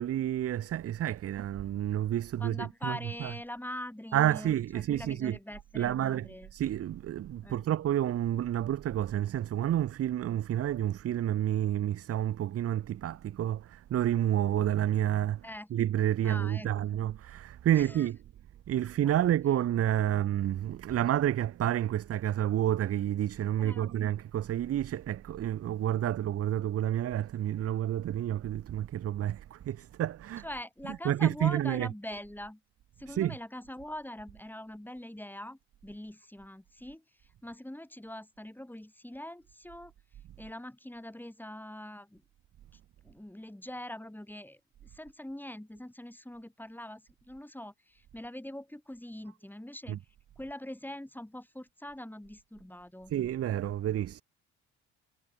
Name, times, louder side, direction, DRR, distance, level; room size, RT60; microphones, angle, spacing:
voice 1, 0.0-3.3 4.1-5.4 5.7-18.2 18.7-30.4 31.0-31.9 33.1-33.3 49.9-50.0 53.1-54.2, right 11 dB, 45° right, 0.8 m, -29 dB
voice 2, 2.4-6.5 7.4-7.7 15.4-15.7 16.2-17.0 17.7-18.1 19.0-19.1 23.6-23.9 30.4-32.6 33.0-39.9 40.4-42.2 43.0-50.0 50.4-53.1, left 1 dB, 5° left, 5.0 m, -43 dB
hypercardioid pair, 60°, 32 cm